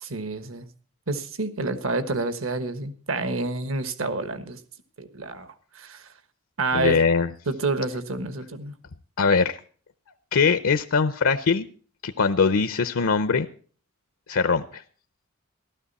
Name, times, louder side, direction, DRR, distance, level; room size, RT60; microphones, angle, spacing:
voice 1, 0.0-0.7 1.1-4.6 5.0-5.5 5.8-6.0 6.6-7.0 7.5-8.7, right 3 dB, 70° right, 11 dB, 1.3 m, -28 dB
voice 2, 6.7-7.3 9.2-9.6 10.3-11.7 12.0-13.5 14.3-14.8, left 5 dB, 80° left, 10 dB, 0.7 m, -21 dB
15.0 x 13.0 x 4.1 m, 0.42 s
head